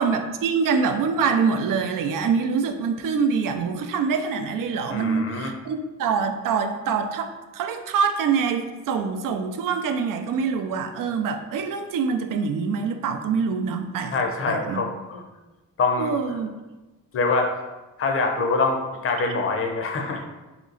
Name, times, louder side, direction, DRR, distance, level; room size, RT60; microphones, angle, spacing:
voice 1, 0.0-14.2 14.5-14.8 16.0-16.5, right 5 dB, 80° right, 6 dB, 0.5 m, -25 dB
voice 2, 4.9-5.5 14.1-15.2 15.8-16.1 17.1-17.5 18.0-18.8 19.0-20.3, left 3 dB, 40° left, 2 dB, 0.6 m, -24 dB
3.1 x 2.9 x 3.8 m, 1.1 s
wide cardioid pair, 145°, 33 cm